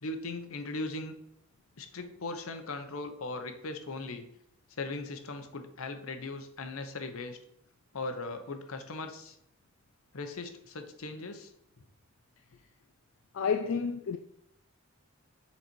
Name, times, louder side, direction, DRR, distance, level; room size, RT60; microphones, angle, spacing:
voice 1, 0.0-1.1 1.8-4.2 4.8-7.4 7.9-9.4 10.1-11.5, left 2 dB, 80° left, 0.9 m, -38 dB
voice 2, 13.3-14.2, left 6 dB, 65° left, 0.4 m, -30 dB
7.3 x 4.0 x 4.5 m
head